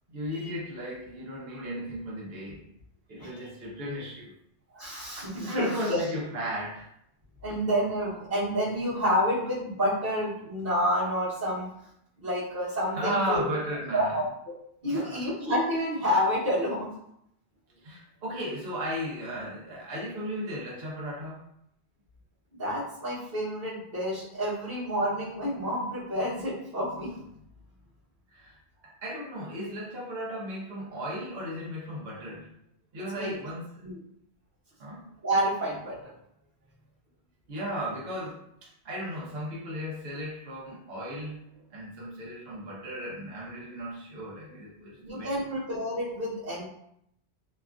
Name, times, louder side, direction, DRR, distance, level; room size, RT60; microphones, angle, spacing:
voice 1, 0.1-2.6 3.1-4.3 5.4-6.9 12.9-14.2 14.8-15.2 17.8-21.4 28.3-28.6 28.8-32.5 32.9-33.8 34.8-35.1 37.5-38.4 38.8-45.3, equal, 65° right, -5 dB, 1.1 m, -35 dB
voice 2, 4.7-6.0 7.4-11.7 12.2-13.5 13.9-14.3 14.8-16.9 22.5-27.2 33.1-33.3 33.8-33.9 35.2-36.0 44.5-44.6 45.0-46.6, equal, 45° right, -15 dB, 1.3 m, -29 dB
2.9 x 2.3 x 2.4 m, 0.74 s
omnidirectional pair, 1.1 m